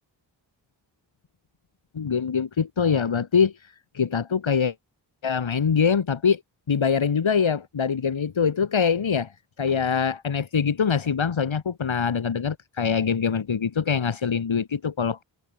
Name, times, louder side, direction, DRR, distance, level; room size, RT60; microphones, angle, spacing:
voice 1, 1.9-4.7 5.2-6.4 6.7-15.2, left 6 dB, 85° left, 4.4 m, -24 dB
cardioid pair, 40°, 45 cm